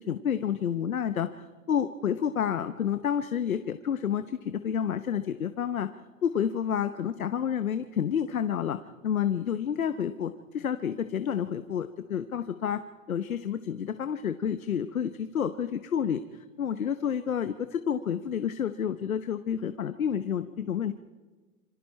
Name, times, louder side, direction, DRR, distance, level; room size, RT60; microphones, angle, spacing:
voice 1, 0.0-5.9 6.2-12.8 13.1-16.2 16.6-20.9, left 8 dB, 90° left, 11 dB, 1.0 m, -29 dB
26.5 x 25.5 x 4.3 m, 1.3 s
hypercardioid pair, 110°, 41 cm